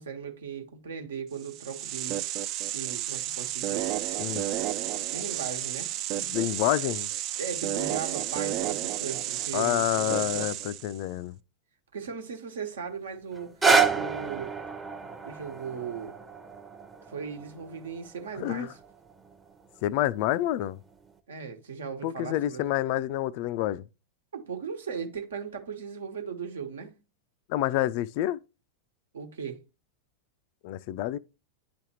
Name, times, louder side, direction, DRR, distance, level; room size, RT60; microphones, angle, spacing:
voice 1, 0.0-2.2 2.7-3.9 5.1-5.9 7.4-10.4 11.9-13.5 13.9-14.5 15.2-16.2 17.0-18.8 21.3-22.6 24.3-27.0 29.1-29.6, right 6 dB, 65° right, 1.2 m, -37 dB
sound 1, 1.4-11.0, right 13 dB, 40° right, 0.4 m, -32 dB
voice 2, 6.1-7.1 9.5-11.4 18.4-18.7 19.8-20.8 22.0-23.9 27.5-28.4 30.6-31.2, left 14 dB, 45° left, 0.3 m, -28 dB
sound 2, 13.3-19.4 20.1-20.2, right 5 dB, 15° right, 0.7 m, -29 dB
10.0 x 3.4 x 2.9 m
figure-of-eight pair, 90°, 0 cm